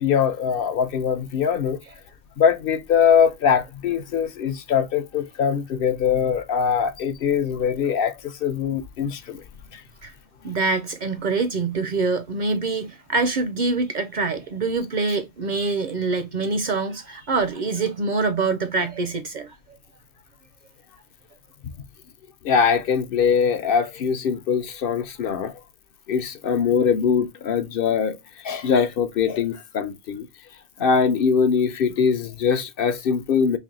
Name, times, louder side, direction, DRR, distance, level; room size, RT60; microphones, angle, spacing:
voice 1, 0.0-1.8 2.4-9.4 9.7-9.8 22.4-25.6 26.1-30.3 30.8-33.6, left 7 dB, 65° left, 0.7 m, -22 dB
voice 2, 10.4-19.6, right 3 dB, 55° right, 0.6 m, -25 dB
3.4 x 3.0 x 3.6 m
omnidirectional pair, 1.1 m